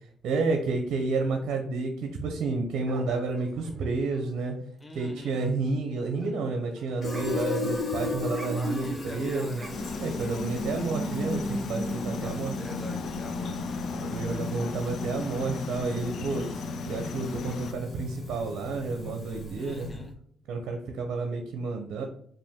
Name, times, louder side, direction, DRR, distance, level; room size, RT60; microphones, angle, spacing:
voice 1, 0.2-4.5 4.9-9.6 10.0-12.6 13.9-19.9 20.5-22.0, right 3 dB, 75° right, 4 dB, 0.6 m, -30 dB
sound 1, 2.9-5.1 5.4-10.1, right 3 dB, 35° right, 0.8 m, -50 dB
voice 2, 4.8-5.4 8.5-9.8 12.1-14.9 19.5-20.1, left 1 dB, 15° left, 2 dB, 0.8 m, -44 dB
Fill (with liquid), 7.0-20.1, left 2 dB, 40° left, 1.2 m, -35 dB
sound 2, 9.7-17.7, left 5 dB, 65° left, 0.4 m, -36 dB
5.1 x 2.5 x 3.5 m, 0.64 s
cardioid pair, 90°, 0 cm